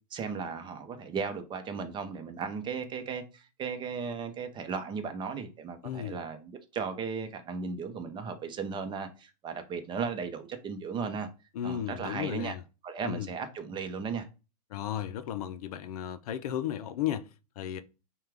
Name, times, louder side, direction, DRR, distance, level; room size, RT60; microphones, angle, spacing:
voice 1, 0.1-11.3 11.6-12.5 12.8-14.3, right 5 dB, 20° right, 0.8 m, -36 dB
voice 2, 5.8-6.2 11.5-12.6 13.0-13.3 14.7-17.3 17.6-17.8, left 10 dB, 65° left, 0.5 m, -34 dB
5.6 x 2.3 x 3.5 m
hypercardioid pair, 125°, 21 cm